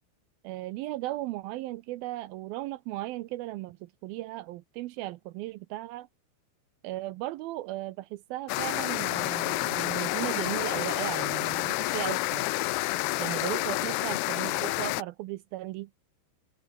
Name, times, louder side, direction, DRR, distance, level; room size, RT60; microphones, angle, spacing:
voice 1, 0.4-6.1 6.8-12.5 13.2-15.9, right 17 dB, 80° right, 2.3 m, -36 dB
sound 1, 8.5-15.0, left 20 dB, 85° left, 2.7 m, -29 dB
omnidirectional pair, 4.6 m